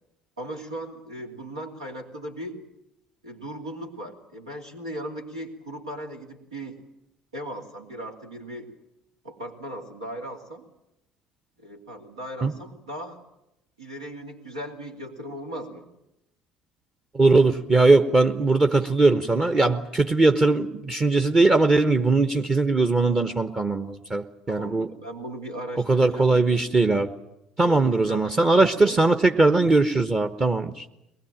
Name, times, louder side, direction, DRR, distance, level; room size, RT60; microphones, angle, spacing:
voice 1, 0.4-2.6 3.2-6.8 7.3-8.7 9.2-10.6 11.6-13.2 13.8-15.9 24.5-26.6 27.6-28.5 28.8-29.1, right 1 dB, 85° right, 1 dB, 2.8 m, -37 dB
voice 2, 17.1-24.9 25.9-27.1 27.6-30.8, right 3 dB, 25° right, 7 dB, 1.2 m, -20 dB
22.5 x 20.0 x 9.0 m, 0.84 s
figure-of-eight pair, 60°, 3 cm